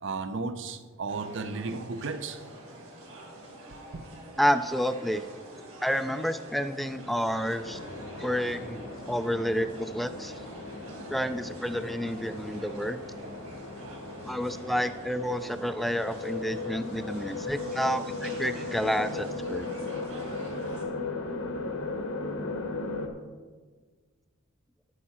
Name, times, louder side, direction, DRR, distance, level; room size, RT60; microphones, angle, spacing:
voice 1, 0.0-2.4 3.9-4.0, right 4 dB, 60° right, 0.7 m, -34 dB
sound 1, 1.1-20.8, right 1 dB, 90° right, 3.2 m, -46 dB
voice 2, 4.4-5.2 5.8-7.8 8.2-10.3 11.1-13.0 14.2-19.7, equal, ahead, 0.3 m, -29 dB
sound 2, 7.6-23.1, left 3 dB, 75° left, 1.3 m, -37 dB
11.0 x 8.6 x 4.4 m
head